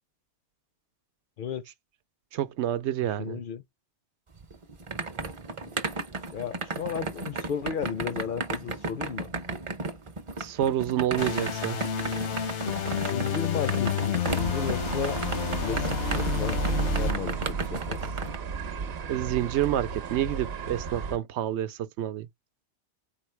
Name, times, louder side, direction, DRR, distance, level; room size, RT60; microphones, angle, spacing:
voice 1, 2.3-3.4 10.4-11.8 19.1-22.3, right 12 dB, 85° right, 0.9 m, -28 dB
voice 2, 3.2-3.6 5.6-5.7 6.3-9.3 13.1-15.2 15.6-16.6 17.0-18.0, left 7 dB, 60° left, 0.6 m, -34 dB
sound 1, 4.3-18.4, right 3 dB, 35° right, 0.6 m, -34 dB
sound 2, 11.2-17.1, left 8 dB, 85° left, 1.2 m, -30 dB
sound 3, 14.2-21.2, right 5 dB, 65° right, 0.9 m, -33 dB
4.2 x 3.8 x 3.2 m
omnidirectional pair, 1.1 m